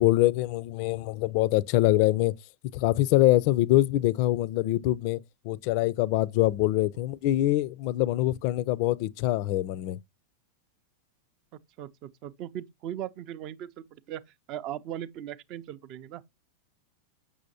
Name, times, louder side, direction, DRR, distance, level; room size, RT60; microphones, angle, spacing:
voice 1, 0.0-2.3 2.7-5.2 5.4-10.0, left 16 dB, 45° left, 0.4 m, -24 dB
voice 2, 11.8-14.2 14.5-16.2, right 11 dB, 40° right, 0.5 m, -38 dB
7.0 x 6.2 x 2.7 m
figure-of-eight pair, 90°, 0 cm